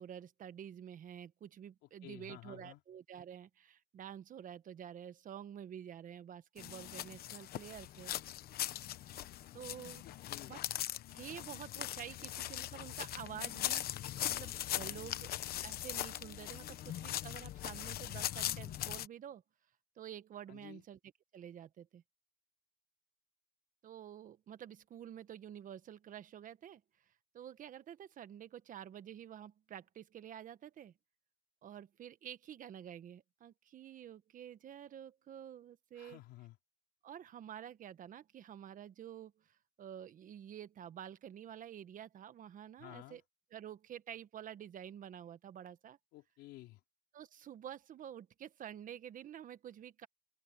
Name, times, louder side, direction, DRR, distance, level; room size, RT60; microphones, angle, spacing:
voice 1, 0.0-8.1 9.5-10.0 10.4-10.6 11.1-15.3 15.6-19.4 20.0-21.0 21.3-22.0 23.8-26.8 27.3-30.9 31.6-36.2 37.0-43.2 43.5-46.0 47.1-50.1, right 10 dB, 50° right, 1.3 m, -49 dB
voice 2, 2.0-2.8 10.0-10.5 14.7-15.1 20.5-20.8 35.9-36.6 42.8-43.2 46.1-46.8, left 17 dB, 90° left, 4.5 m, -53 dB
sound 1, 6.6-19.1, left 13 dB, 65° left, 1.0 m, -40 dB
open air
cardioid pair, 110°, 17 cm